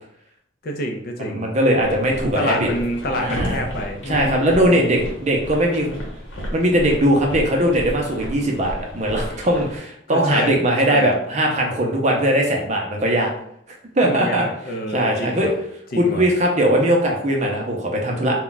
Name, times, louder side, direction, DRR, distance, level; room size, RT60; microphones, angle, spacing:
voice 1, 0.6-1.5 2.2-5.0 10.1-10.6 10.9-11.2 14.0-15.5 15.9-16.3, equal, 50° left, 3 dB, 0.5 m, -27 dB
voice 2, 1.2-2.7 3.1-3.7 4.1-5.9 6.5-13.3 14.0-14.4 14.9-15.5 16.0-18.4, right 1 dB, 40° right, 1 dB, 0.5 m, -20 dB
sound 1, 1.8-9.8, equal, 90° left, 0.9 m, -33 dB
2.3 x 2.2 x 3.8 m, 0.70 s
head